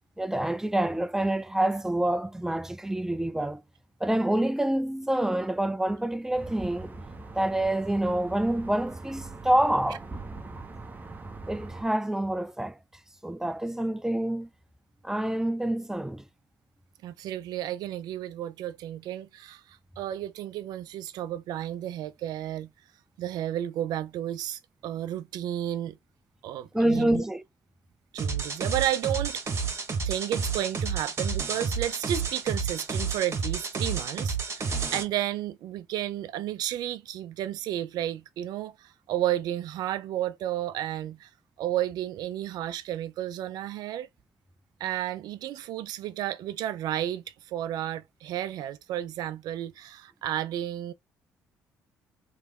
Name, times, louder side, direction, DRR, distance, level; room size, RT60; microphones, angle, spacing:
voice 1, 0.2-3.6 4.0-7.0 7.3-10.1 11.5-12.8 13.2-14.5 15.0-16.2 26.7-27.4, right 1 dB, 5° right, 0.6 m, -27 dB
sound 1, 6.3-11.8, right 3 dB, 25° right, 0.9 m, -42 dB
voice 2, 17.0-22.7 23.2-26.0 26.4-27.2 28.1-29.6 30.0-41.3 41.6-44.1 44.8-50.9, right 12 dB, 70° right, 0.5 m, -32 dB
sound 2, 28.2-35.0, right 5 dB, 40° right, 1.5 m, -30 dB
3.4 x 3.1 x 3.6 m
supercardioid pair, 60°, 7 cm